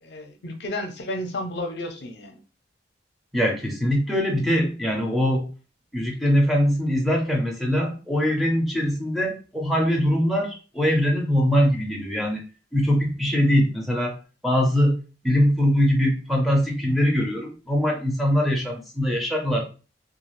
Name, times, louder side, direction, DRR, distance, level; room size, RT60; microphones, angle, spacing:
voice 1, 0.0-2.4, left 1 dB, 65° left, 4 dB, 0.6 m, -32 dB
voice 2, 3.3-5.5 5.9-12.4 12.7-14.2 14.4-15.0 15.2-19.6, equal, ahead, 0 dB, 0.5 m, -22 dB
2.4 x 2.3 x 3.1 m, 0.34 s
head